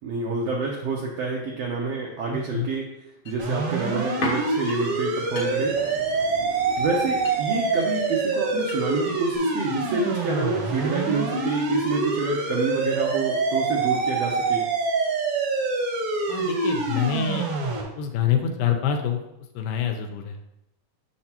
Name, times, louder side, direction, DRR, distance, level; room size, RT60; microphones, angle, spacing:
voice 1, 0.0-2.8 3.2-5.7 6.8-14.6, right 3 dB, 80° right, -2 dB, 1.4 m, -28 dB
voice 2, 2.3-2.7 16.3-17.5 18.0-19.2 19.6-20.4, left 8 dB, 85° left, 4 dB, 2.3 m, -26 dB
sound 1, 3.3-9.1 9.3-9.4, left 1 dB, 60° left, 1.3 m, -37 dB
sound 2, 3.4-17.8, right 3 dB, 60° right, 1.5 m, -26 dB
6.5 x 6.4 x 2.9 m, 0.87 s
omnidirectional pair, 4.0 m